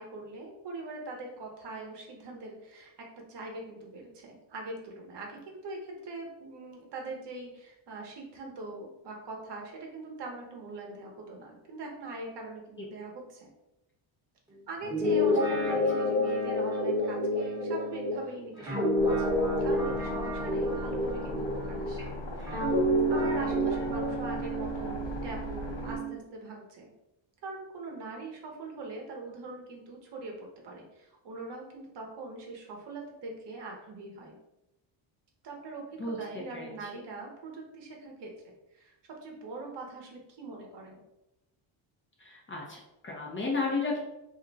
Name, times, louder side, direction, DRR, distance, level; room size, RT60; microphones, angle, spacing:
voice 1, 0.0-13.5 14.7-19.3 19.6-22.0 23.1-26.9 27.4-34.4 35.4-38.9 39.2-41.0, right 3 dB, 55° right, 1 dB, 0.9 m, -42 dB
Guitar, 14.8-22.0 22.5-26.2, equal, 10° right, 1.0 m, -29 dB
sound 1, 19.0-26.0, left 2 dB, 65° left, 0.8 m, -39 dB
voice 2, 36.5-36.9 42.2-44.0, left 3 dB, 25° left, -2 dB, 0.7 m, -33 dB
2.6 x 2.1 x 3.9 m, 0.91 s
cardioid pair, 125°, 49 cm